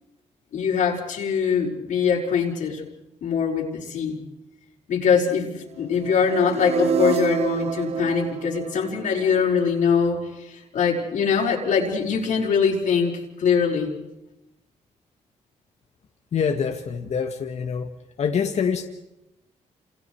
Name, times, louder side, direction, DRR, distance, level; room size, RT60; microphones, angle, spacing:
voice 1, 0.5-2.8 3.2-4.2 4.9-13.9, left 6 dB, 75° left, -2 dB, 5.3 m, -23 dB
sound 1, 6.0-10.0, right 6 dB, 55° right, 1.3 m, -28 dB
voice 2, 16.3-17.9 18.2-18.8, left 6 dB, 60° left, 5 dB, 1.9 m, -25 dB
29.0 x 27.5 x 4.8 m, 0.91 s
cardioid pair, 85°, 13 cm